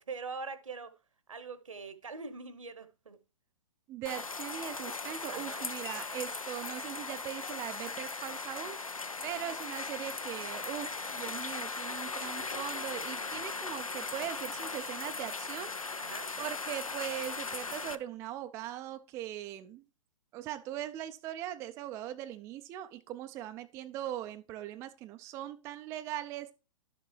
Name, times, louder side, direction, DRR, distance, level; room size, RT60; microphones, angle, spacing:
voice 1, 0.1-0.9 1.3-3.2 5.3-5.6 16.0-16.3, right 4 dB, 70° right, 1.1 m, -43 dB
voice 2, 3.9-8.8 9.2-15.8 16.4-19.8 20.3-26.5, right 12 dB, 15° right, 0.4 m, -40 dB
sound 1, 4.1-18.0, left 4 dB, 85° left, 0.6 m, -38 dB
Wind chime, 5.8-11.9, left 9 dB, 40° left, 1.7 m, -59 dB
11.5 x 6.9 x 3.2 m
figure-of-eight pair, 115°, 17 cm